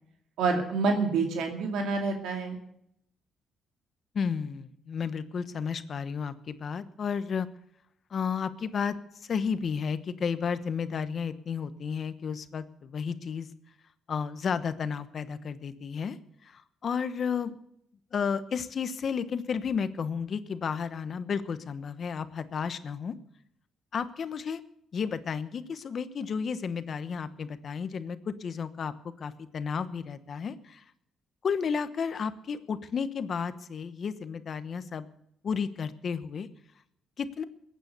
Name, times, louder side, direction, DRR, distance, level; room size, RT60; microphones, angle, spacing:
voice 1, 0.4-2.6, right 4 dB, 85° right, 4 dB, 2.4 m, -27 dB
voice 2, 4.1-7.5 8.1-8.9 9.2-13.5 14.1-17.5 18.1-23.1 23.9-24.6 24.9-30.8 31.4-35.1 35.4-36.5 37.2-37.4, left 6 dB, 50° left, 13 dB, 1.1 m, -32 dB
21.0 x 9.1 x 6.7 m, 0.74 s
cardioid pair, 90°, 0 cm